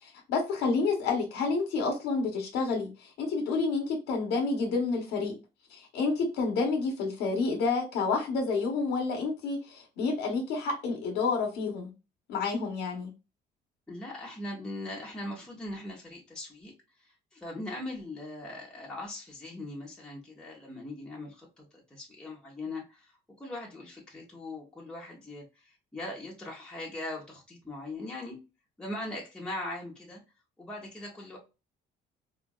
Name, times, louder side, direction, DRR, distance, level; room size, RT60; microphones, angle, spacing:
voice 1, 0.0-5.3 5.7-11.9 12.3-13.1, left 4 dB, 90° left, 0.9 m, -29 dB
voice 2, 13.9-28.4 28.8-30.2 30.6-31.4, left 1 dB, 5° left, 1.0 m, -40 dB
3.9 x 2.5 x 2.3 m
cardioid pair, 110°, 17 cm